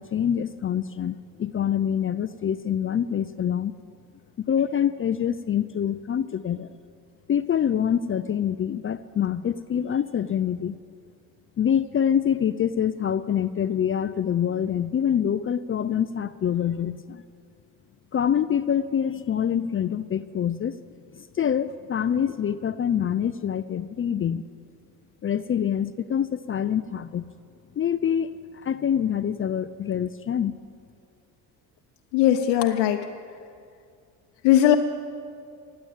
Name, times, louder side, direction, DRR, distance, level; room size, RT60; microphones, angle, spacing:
voice 1, 0.0-3.8 4.4-6.8 7.3-10.8 11.6-17.2 18.1-20.8 21.1-24.4 25.2-27.2 27.8-30.6, left 9 dB, 30° left, 14 dB, 0.4 m, -25 dB
voice 2, 32.1-33.0 34.4-34.7, left 11 dB, 80° left, 4 dB, 0.8 m, -19 dB
16.0 x 8.9 x 8.8 m, 2.3 s
supercardioid pair, 65°, 43 cm